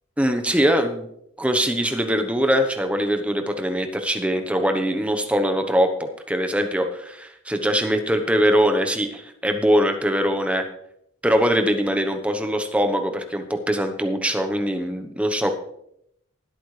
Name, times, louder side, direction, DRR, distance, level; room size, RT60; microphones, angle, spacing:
voice 1, 0.2-1.1 1.4-10.6 11.2-15.5, equal, 5° right, 6 dB, 0.9 m, -22 dB
19.0 x 8.5 x 3.3 m, 0.75 s
head